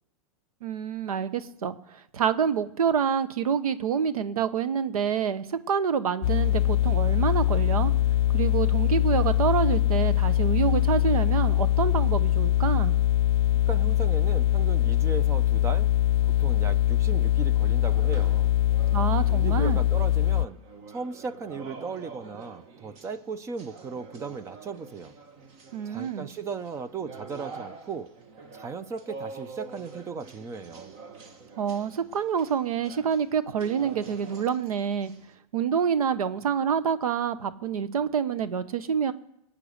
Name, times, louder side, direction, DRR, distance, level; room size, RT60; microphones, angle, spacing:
voice 1, 0.6-7.9 8.3-12.9 18.9-19.8 25.7-26.3 31.6-35.1 35.5-39.1, right 7 dB, 80° right, 13 dB, 1.1 m, -27 dB
sound 1, 6.2-20.5, left 13 dB, 50° left, 0.4 m, -23 dB
voice 2, 13.7-15.9 16.4-18.5 19.3-20.6 20.9-25.1 25.9-28.1 28.5-30.9, right 5 dB, 15° right, 13 dB, 0.5 m, -36 dB
Interior Salão de Jogos, 17.9-35.3, right 4 dB, 35° right, 1.8 m, -46 dB
20.0 x 8.6 x 6.6 m, 0.79 s
hypercardioid pair, 140°, 18 cm